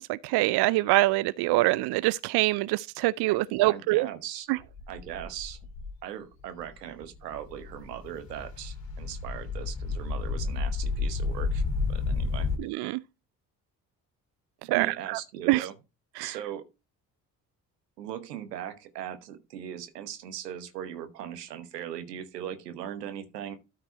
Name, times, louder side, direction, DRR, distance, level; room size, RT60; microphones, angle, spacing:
voice 1, 0.0-4.1 4.5-4.6 12.6-13.0 14.7-15.2 15.5-15.6 16.2-16.4, right 19 dB, 55° right, 0.5 m, -25 dB
voice 2, 3.3-4.5 4.9-5.6 6.0-11.6 11.9-12.5 14.6-15.7 16.2-16.6 18.0-23.6, right 10 dB, 85° right, 1.1 m, -39 dB
sound 1, 4.7-5.9 6.6-6.7 7.0-12.6, left 4 dB, 50° left, 2.4 m, -31 dB
12.5 x 4.6 x 4.4 m
hypercardioid pair, 40°, 47 cm